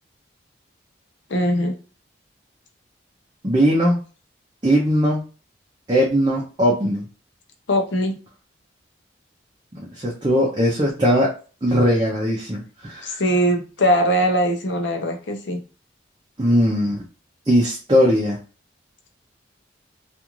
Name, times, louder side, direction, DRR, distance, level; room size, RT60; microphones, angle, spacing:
voice 1, 1.3-1.7 7.7-8.2 13.0-15.6, equal, 70° left, 4 dB, 0.6 m, -21 dB
voice 2, 3.4-4.0 4.6-5.2 5.9-7.1 9.7-11.3 11.6-13.2 16.4-17.0 17.5-18.4, equal, 25° right, -4 dB, 0.5 m, -19 dB
2.5 x 2.4 x 3.0 m, 0.35 s
head